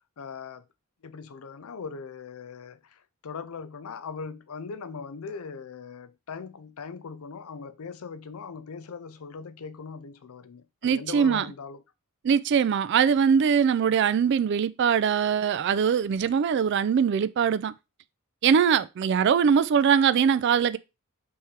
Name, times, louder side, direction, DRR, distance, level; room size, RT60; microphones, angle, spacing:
voice 1, 0.2-0.6 1.0-11.8, left 5 dB, 80° left, 0.5 m, -40 dB
voice 2, 10.8-11.5 12.2-17.7 18.4-20.8, right 7 dB, 50° right, 0.3 m, -22 dB
3.6 x 3.2 x 4.3 m
head